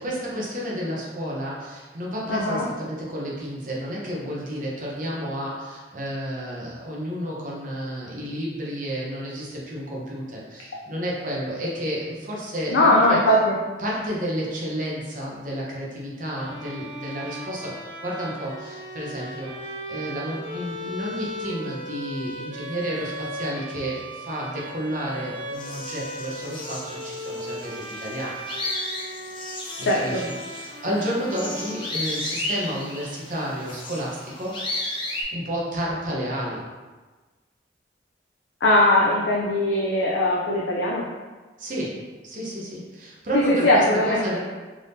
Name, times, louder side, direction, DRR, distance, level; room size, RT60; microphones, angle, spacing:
voice 1, 0.0-13.2 13.8-28.4 29.8-34.6 35.3-36.6 41.6-42.0 42.2-44.4, equal, 45° right, -5 dB, 0.8 m, -31 dB
voice 2, 2.3-2.6 12.7-13.6 29.8-30.2 38.6-41.1 43.3-44.3, left 1 dB, 85° left, -2 dB, 0.5 m, -20 dB
Bowed string instrument, 16.3-32.4, equal, 85° right, 1.2 m, -37 dB
sound 1, 25.5-35.2, left 1 dB, 25° left, 0.6 m, -34 dB
3.7 x 3.4 x 2.7 m, 1.3 s
head